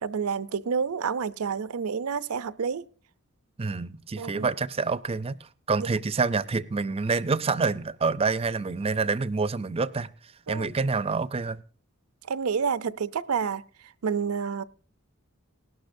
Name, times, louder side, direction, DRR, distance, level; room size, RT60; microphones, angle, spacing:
voice 1, 0.0-2.8 4.2-4.5 5.8-5.9 10.5-10.7 12.3-13.6 14.0-14.6, right 6 dB, 90° right, 0.5 m, -29 dB
voice 2, 3.6-10.1 10.5-11.6, right 4 dB, 25° right, 0.5 m, -27 dB
19.0 x 11.5 x 2.6 m
head